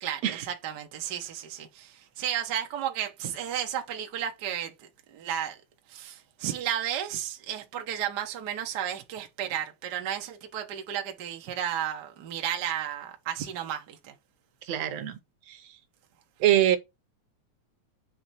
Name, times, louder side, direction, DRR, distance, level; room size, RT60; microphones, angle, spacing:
voice 1, 0.0-5.6 5.9-14.1, right 10 dB, 90° right, 0.9 m, -33 dB
voice 2, 14.7-15.2 15.5-15.6 16.4-16.8, right 12 dB, 70° right, 1.7 m, -24 dB
7.7 x 3.3 x 4.1 m
omnidirectional pair, 3.5 m